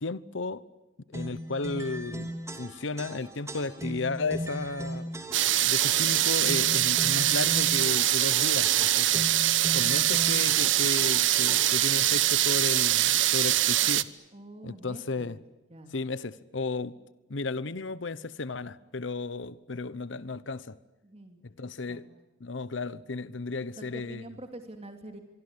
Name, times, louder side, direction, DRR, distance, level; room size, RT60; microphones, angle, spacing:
voice 1, 0.0-0.6 1.1-2.3 2.6-5.1 5.6-9.3 9.7-14.1 14.6-15.4 15.9-17.0 17.3-20.8 21.6-22.1 22.4-24.2, left 3 dB, 75° left, 0.9 m, -34 dB
sound 1, 1.1-12.0, equal, 15° right, 3.1 m, -38 dB
sound 2, 5.3-14.0, right 14 dB, 75° right, 1.0 m, -24 dB
voice 2, 14.3-15.4 15.7-15.9 21.0-21.4 21.9-22.0 23.8-25.2, right 1 dB, 30° right, 2.6 m, -45 dB
25.0 x 23.5 x 9.7 m
head